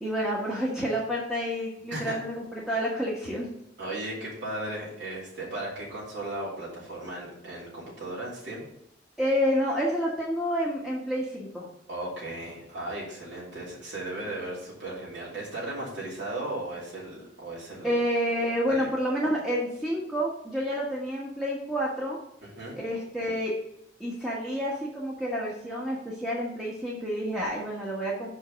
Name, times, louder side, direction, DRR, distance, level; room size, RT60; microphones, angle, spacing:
voice 1, 0.0-3.5 9.2-11.7 17.8-22.2 22.7-23.5 24.0-28.3, equal, 5° right, -6 dB, 1.3 m, -29 dB
voice 2, 3.8-8.6 11.9-17.9 18.7-18.9 22.4-22.8, right 1 dB, 70° right, -6 dB, 2.7 m, -36 dB
5.8 x 5.3 x 6.3 m, 0.77 s
head